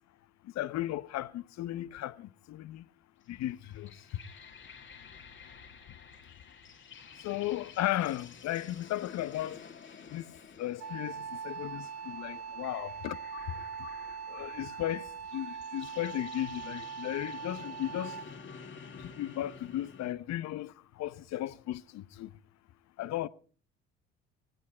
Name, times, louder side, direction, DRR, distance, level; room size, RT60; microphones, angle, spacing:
voice 1, 0.4-2.9 3.3-4.2 7.2-9.6 10.1-13.2 14.3-18.2 19.0-22.3 23.0-23.3, left 14 dB, 55° left, 0.9 m, -36 dB
sound 1, 3.2-20.1, left 6 dB, 35° left, 1.8 m, -51 dB
Wind instrument woodwind instrument, 10.8-18.4, right 6 dB, 65° right, 1.9 m, -42 dB
17.5 x 17.0 x 4.4 m
hypercardioid pair, 65°, 32 cm